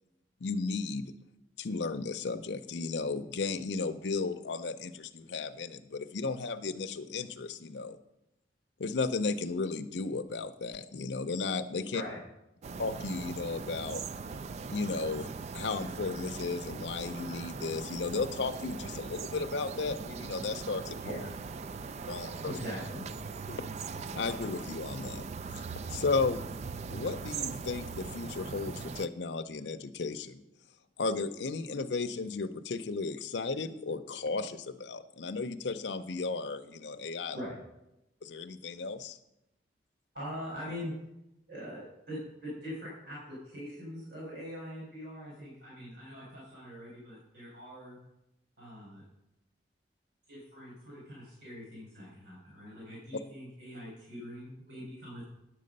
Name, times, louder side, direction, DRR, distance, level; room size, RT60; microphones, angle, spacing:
voice 1, 0.4-1.1 1.6-8.0 8.8-12.0 12.8-14.0 14.7-15.3 15.5-21.0 22.1-22.5 23.5-23.7 24.1-25.3 25.9-26.4 26.9-30.4 31.0-37.4 38.2-39.2, left 4 dB, 90° left, 8 dB, 0.6 m, -34 dB
autumn-morning, 12.6-29.1, right 5 dB, 40° right, 0.3 m, -40 dB
voice 2, 22.5-23.0 37.3-37.6 40.1-40.9 41.5-48.0 48.6-49.0 50.3-55.2, equal, 70° right, -6 dB, 4.7 m, -42 dB
10.5 x 7.6 x 5.3 m, 0.88 s
head